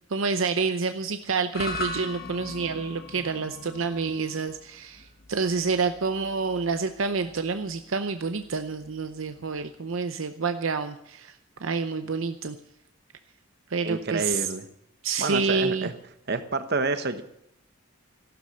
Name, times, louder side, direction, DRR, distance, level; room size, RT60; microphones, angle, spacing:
voice 1, 0.1-12.6 13.7-14.5 15.0-15.9, right 4 dB, 70° right, 8 dB, 0.7 m, -28 dB
sound 1, 1.5-9.9, left 2 dB, 45° left, 1.1 m, -40 dB
voice 2, 13.8-14.6 15.2-16.0 16.3-17.2, right 3 dB, 50° right, 10 dB, 1.1 m, -28 dB
15.0 x 12.0 x 6.6 m, 0.75 s
head